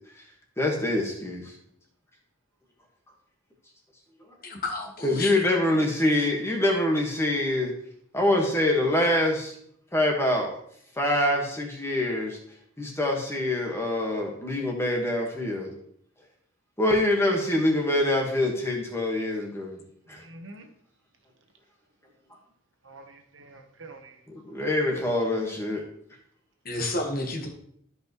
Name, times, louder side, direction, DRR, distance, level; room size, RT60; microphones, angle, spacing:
voice 1, 0.6-1.5 5.0-7.7 8.1-9.5 9.9-10.5 11.0-12.4 12.8-15.7 16.8-19.8 20.1-20.2 24.3-25.8, left 1 dB, 15° left, 1.5 m, -25 dB
voice 2, 4.4-5.4 26.6-27.5, left 2 dB, 45° left, 1.3 m, -31 dB
voice 3, 20.1-20.7 22.8-24.2, right 2 dB, 70° right, 1.2 m, -47 dB
13.0 x 5.4 x 3.1 m
head